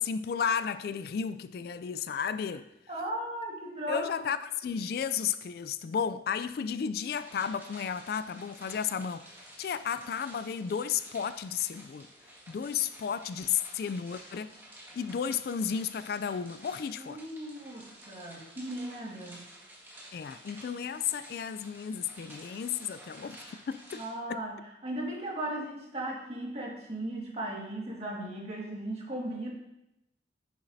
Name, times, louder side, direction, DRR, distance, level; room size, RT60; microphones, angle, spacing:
voice 1, 0.0-2.7 3.9-9.3 9.6-12.1 12.5-14.6 14.9-17.2 20.1-23.4 23.7-24.0 24.3-24.4, left 7 dB, 55° left, 0.3 m, -33 dB
voice 2, 2.9-4.3 17.0-19.4 23.9-29.5, right 1 dB, 35° right, 1.8 m, -37 dB
sound 1, 7.1-24.1, right 1 dB, 15° right, 1.6 m, -52 dB
9.7 x 7.1 x 2.7 m
head